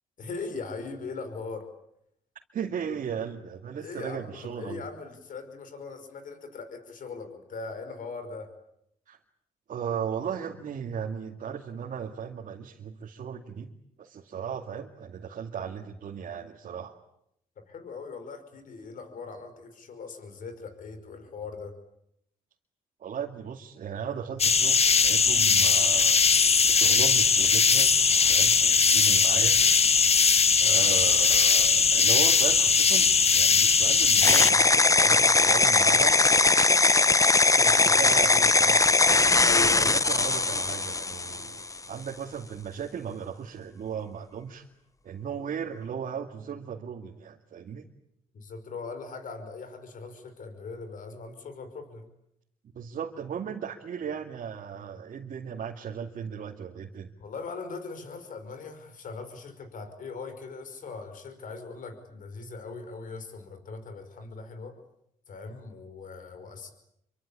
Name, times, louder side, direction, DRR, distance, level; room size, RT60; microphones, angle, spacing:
voice 1, 0.2-1.6 3.8-8.5 17.7-21.7 28.6-28.8 30.6-30.8 39.4-40.0 48.3-52.1 57.2-64.8 65.3-66.7, left 4 dB, 65° left, 9 dB, 5.4 m, -40 dB
voice 2, 2.5-4.8 9.1-9.2 9.7-13.7 14.0-16.9 23.0-26.2 26.7-27.9 28.3-29.6 30.6-36.2 37.5-38.9 39.7-44.6 45.0-47.8 52.7-57.1, right 7 dB, 65° right, 0 dB, 2.5 m, -36 dB
sound 1, 24.4-34.5, left 5 dB, 45° left, 1.7 m, -20 dB
sound 2, 34.2-41.7, left 3 dB, 20° left, 1.0 m, -21 dB
27.0 x 24.5 x 8.7 m, 0.77 s
supercardioid pair, 60°, 15 cm